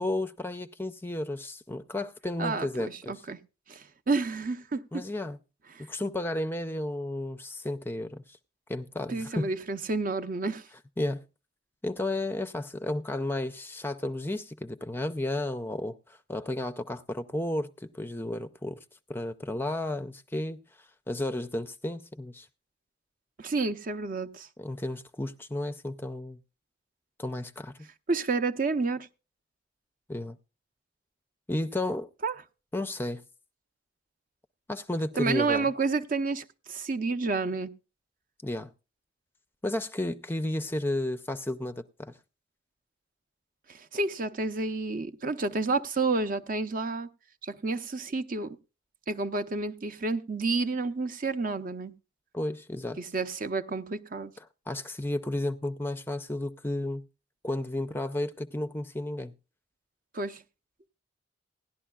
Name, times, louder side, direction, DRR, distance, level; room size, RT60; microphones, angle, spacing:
voice 1, 0.0-3.3 4.9-5.4 5.9-8.2 8.7-9.5 11.0-11.2 11.8-18.8 19.1-20.6 21.1-22.5 24.6-26.4 27.2-27.7 30.1-30.4 31.5-32.1 32.7-33.2 34.7-35.7 38.4-38.7 39.6-42.1 52.3-53.0 54.4-57.1 57.4-59.3, left 1 dB, 10° left, 0.4 m, -33 dB
voice 2, 2.4-3.4 3.7-4.8 9.1-10.6 23.4-24.5 28.1-29.1 32.2-32.3 35.2-37.7 43.9-47.1 47.4-48.6 49.1-51.9 53.0-54.3 60.1-60.4, right 3 dB, 45° right, 0.6 m, -30 dB
17.0 x 11.0 x 2.3 m
head